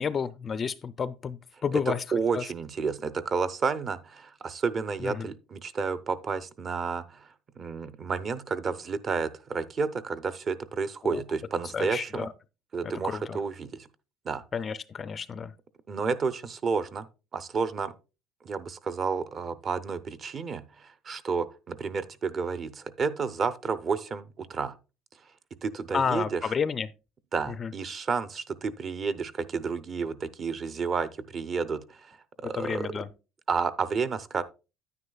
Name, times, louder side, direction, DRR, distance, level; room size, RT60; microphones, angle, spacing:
voice 1, 0.0-2.0 2.3-2.4 5.0-5.3 11.0-11.2 11.7-12.3 12.8-13.4 14.5-15.5 25.9-26.9 27.5-27.7 32.4-33.1, left 6 dB, 25° left, 0.4 m, -31 dB
voice 2, 2.1-7.3 7.6-12.3 12.7-13.9 14.2-14.4 15.9-17.9 18.4-24.8 25.6-26.4 27.3-32.2 32.4-32.9 33.5-34.4, right 5 dB, 30° right, 0.5 m, -31 dB
9.6 x 9.5 x 2.3 m
cardioid pair, 155°, 0 cm